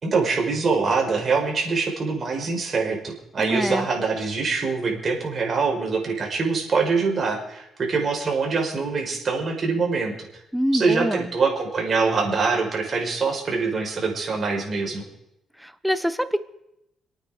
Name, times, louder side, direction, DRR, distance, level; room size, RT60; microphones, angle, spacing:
voice 1, 0.0-10.1 10.7-15.1, right 4 dB, 45° right, 1 dB, 5.3 m, -24 dB
voice 2, 3.4-3.9 10.5-11.3 15.6-16.4, equal, ahead, 13 dB, 1.0 m, -25 dB
27.5 x 9.2 x 5.2 m, 0.84 s
cardioid pair, 90°, 0 cm